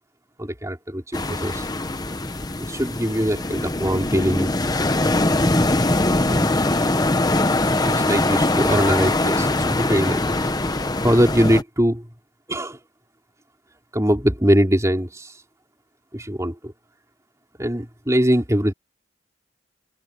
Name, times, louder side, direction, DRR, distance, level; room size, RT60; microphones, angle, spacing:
voice 1, 0.4-1.7 2.7-4.5 6.3-6.7 7.8-10.2 11.0-12.1 12.5-12.8 13.9-15.3 16.1-16.7 17.6-18.7, equal, 15° right, 4.5 m, -22 dB
sound 1, 1.1-11.6, left 2 dB, 20° left, 1.0 m, -22 dB
open air
head